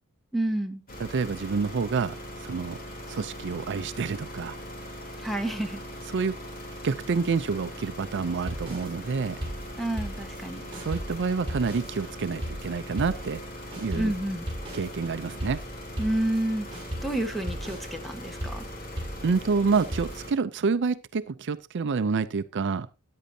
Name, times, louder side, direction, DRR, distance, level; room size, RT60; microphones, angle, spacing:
voice 1, 0.3-0.8 5.2-5.8 9.8-10.6 13.9-14.5 16.0-16.7 17.0-18.6, right 1 dB, ahead, 1.3 m, -29 dB
sound 1, 0.9-20.3, equal, 40° left, 3.3 m, -40 dB
voice 2, 1.0-2.8 3.1-4.6 6.1-6.4 6.8-9.4 10.7-13.4 13.8-14.1 14.7-15.6 19.2-22.9, right 5 dB, 55° right, 0.5 m, -28 dB
sound 2, 8.5-10.5 10.7-16.5 16.7-20.2, equal, 25° right, 6.7 m, -37 dB
13.5 x 10.0 x 2.7 m
head